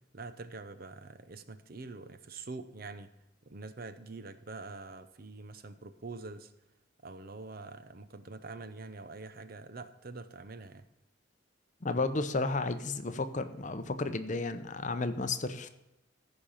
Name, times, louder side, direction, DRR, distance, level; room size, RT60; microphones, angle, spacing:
voice 1, 0.1-3.1 3.5-6.5 7.0-10.9, right 3 dB, 50° right, 12 dB, 0.7 m, -45 dB
voice 2, 11.8-15.7, left 3 dB, 40° left, 10 dB, 0.7 m, -33 dB
15.0 x 5.2 x 5.6 m, 0.93 s
head